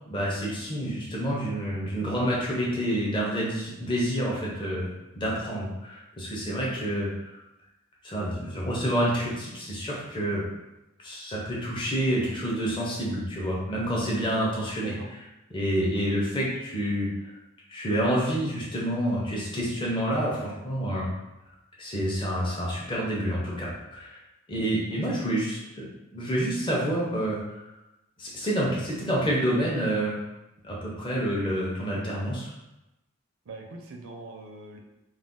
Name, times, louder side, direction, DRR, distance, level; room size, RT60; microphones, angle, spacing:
voice 1, 0.1-4.9 5.2-7.1 8.0-10.4 11.0-14.9 15.5-17.1 17.7-21.1 21.8-24.2 24.5-25.9 26.1-27.4 28.2-30.2 30.6-32.5, equal, 25° left, -5 dB, 0.6 m, -28 dB
voice 2, 33.5-34.8, right 3 dB, 80° right, 2 dB, 0.5 m, -42 dB
2.4 x 2.2 x 3.6 m, 0.93 s
head